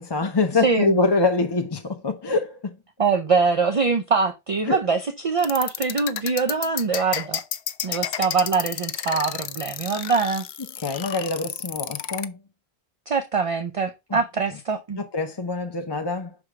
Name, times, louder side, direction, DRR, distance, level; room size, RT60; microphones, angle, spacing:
voice 1, 0.0-2.8 4.6-4.8 10.8-12.4 14.1-14.2 15.0-16.4, left 3 dB, 30° left, 0.6 m, -24 dB
voice 2, 0.6-1.0 3.0-7.4 7.8-10.5 13.1-15.0, right 5 dB, 40° right, 0.6 m, -23 dB
sound 1, 5.4-12.3, left 10 dB, 90° left, 0.9 m, -31 dB
6.1 x 4.9 x 3.5 m
omnidirectional pair, 1.0 m